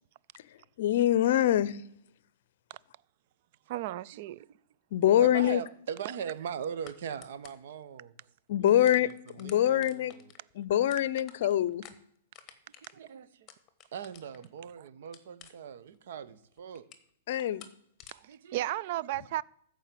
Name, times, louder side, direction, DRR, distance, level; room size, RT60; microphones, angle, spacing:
voice 1, 0.8-1.8 4.9-5.6 8.5-9.1 9.3-10.1 10.6-11.8 17.3-17.6, left 12 dB, 55° left, 0.6 m, -24 dB
voice 2, 3.7-4.5 18.1-18.2 18.5-19.4, right 14 dB, 45° right, 0.4 m, -33 dB
voice 3, 5.2-8.2 8.6-10.3 11.9-12.0 12.8-13.5 13.9-16.9 18.2-18.7 19.0-19.1, right 7 dB, 60° right, 1.0 m, -40 dB
sound 1, 6.8-7.0 7.2-7.7 8.2-8.3 8.6-14.6 15.1-15.9 16.3-17.1 17.4-17.7 18.0-18.2, left 9 dB, 25° left, 1.3 m, -52 dB
13.5 x 5.0 x 8.4 m
hypercardioid pair, 155°, 0 cm